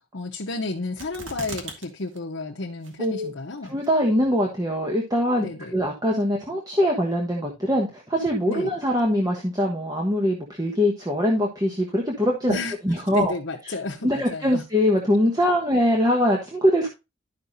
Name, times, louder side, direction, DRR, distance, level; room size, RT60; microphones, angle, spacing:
voice 1, 0.1-3.8 5.4-5.7 8.5-8.7 12.5-12.7 13.1-14.6, left 2 dB, 70° left, 1.0 m, -31 dB
sound 1, 1.0-1.9 2.2-2.3 2.8-3.3 3.8-3.9, right 2 dB, 75° right, 2.0 m, -37 dB
voice 2, 3.0-3.3 3.7-13.3 14.0-16.9, equal, 20° right, 1.3 m, -23 dB
12.0 x 5.8 x 2.7 m
head